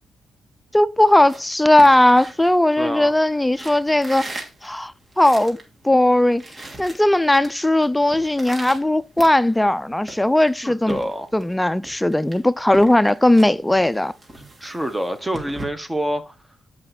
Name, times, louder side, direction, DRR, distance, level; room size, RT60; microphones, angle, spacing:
voice 1, 0.7-4.3 4.6-5.6 5.8-6.4 6.8-11.0 11.3-14.1, left 1 dB, 10° left, 0.4 m, -17 dB
sound 1, 1.0-3.1 3.5-5.7 6.0-6.1 6.3-7.5 7.8-9.7 10.1-11.5 11.8-15.7, right 2 dB, 35° right, 2.7 m, -38 dB
voice 2, 2.8-3.1 10.6-11.3 14.6-16.3, right 1 dB, 15° right, 1.5 m, -27 dB
7.6 x 5.7 x 4.3 m
supercardioid pair, 45°, 0 cm